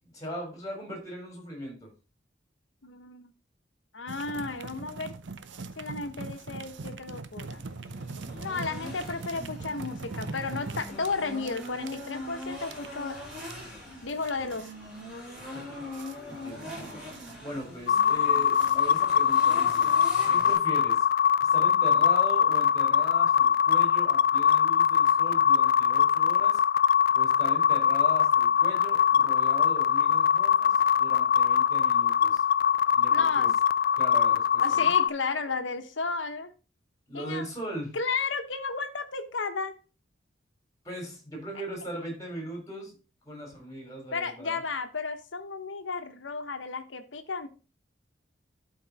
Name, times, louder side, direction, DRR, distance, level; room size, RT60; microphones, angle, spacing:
voice 1, 0.0-1.9 15.4-15.8 16.2-17.0 17.4-19.9 20.3-21.1 21.4-26.6 27.1-32.4 32.9-33.5 34.0-34.9 37.1-38.0 40.8-42.9 43.2-44.6, right 1 dB, 20° left, 2 dB, 3.8 m, -39 dB
voice 2, 2.8-3.3 3.9-5.1 5.8-7.6 8.4-13.2 14.0-14.7 33.1-33.5 34.6-36.5 37.1-37.4 37.9-39.7 44.1-47.5, left 4 dB, 85° left, 8 dB, 1.1 m, -33 dB
sound 1, 4.1-20.4, right 3 dB, 75° right, 0.7 m, -42 dB
sound 2, 7.3-20.5, left 1 dB, 5° right, 5.4 m, -42 dB
sound 3, 17.9-35.1, left 8 dB, 50° left, 0.3 m, -22 dB
11.5 x 4.6 x 4.0 m, 0.33 s
head